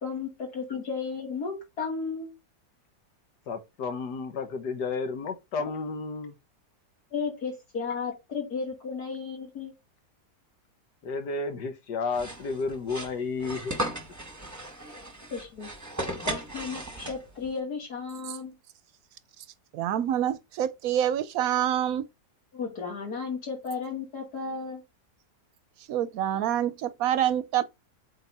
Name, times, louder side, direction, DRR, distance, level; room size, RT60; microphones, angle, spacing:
voice 1, 0.0-2.3 7.1-9.7 15.3-15.7 16.2-18.6 22.5-24.8, left 5 dB, 70° left, 3.0 m, -34 dB
voice 2, 3.5-6.3 11.0-13.7, left 4 dB, 90° left, 1.8 m, -32 dB
sound 1, 12.1-17.5, right 1 dB, 10° right, 1.0 m, -36 dB
voice 3, 19.7-22.1 25.9-27.6, right 10 dB, 70° right, 1.0 m, -26 dB
8.1 x 3.6 x 4.1 m
omnidirectional pair, 1.7 m